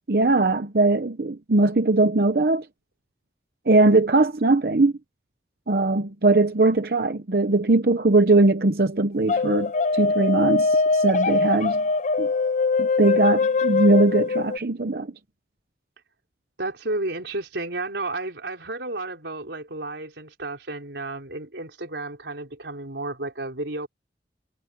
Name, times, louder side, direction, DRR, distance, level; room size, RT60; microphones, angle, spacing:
voice 1, 0.1-2.6 3.7-4.9 5.7-11.8 12.2-12.3 12.8-15.1, right 2 dB, 60° right, 0.8 m, -20 dB
sound 1, 9.3-14.6, left 4 dB, 45° left, 0.5 m, -22 dB
voice 2, 16.6-23.9, right 2 dB, 90° right, 4.0 m, -32 dB
head